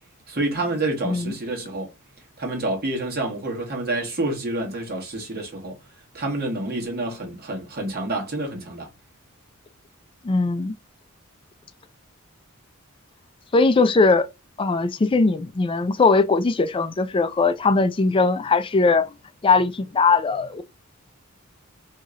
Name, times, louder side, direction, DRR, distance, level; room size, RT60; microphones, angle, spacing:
voice 1, 0.3-1.9 2.4-5.7 6.1-8.9, right 2 dB, 45° right, 1.2 m, -28 dB
voice 2, 10.2-10.7 13.5-14.3 14.6-19.1 19.4-20.6, left 3 dB, 25° left, 0.3 m, -20 dB
3.0 x 2.7 x 2.3 m
head